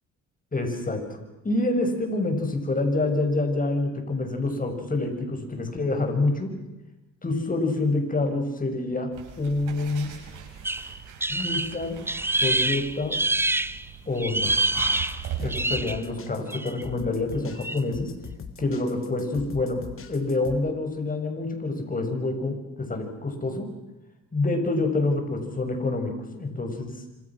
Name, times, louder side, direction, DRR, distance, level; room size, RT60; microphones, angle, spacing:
voice 1, 0.5-6.6 7.2-10.1 11.3-12.0 12.4-13.2 14.1-14.6 15.4-18.1 18.6-23.7 24.3-27.0, left 2 dB, 30° left, 5 dB, 6.7 m, -27 dB
sound 1, 9.1-15.6, right 8 dB, 85° right, 6.9 m, -40 dB
sound 2, 10.6-13.8 14.2-16.0 16.5-16.8 17.6-17.8, right 2 dB, 10° right, 0.9 m, -26 dB
sound 3, 14.4-20.6, left 5 dB, 45° left, 3.7 m, -41 dB
27.0 x 27.0 x 6.2 m, 1.0 s
cardioid pair, 90°, 30 cm